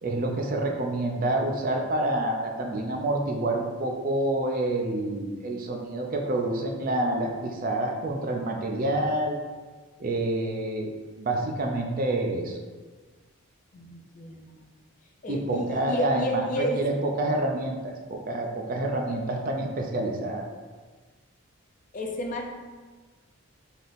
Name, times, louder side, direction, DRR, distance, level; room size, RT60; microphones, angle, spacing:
voice 1, 0.0-9.4 10.0-10.9 11.2-12.6 15.3-20.5, right 1 dB, 40° right, 2 dB, 0.4 m, -28 dB
voice 2, 13.7-14.6 15.2-16.8 21.9-22.5, equal, 35° left, 1 dB, 0.4 m, -31 dB
4.2 x 3.4 x 2.5 m, 1.4 s
head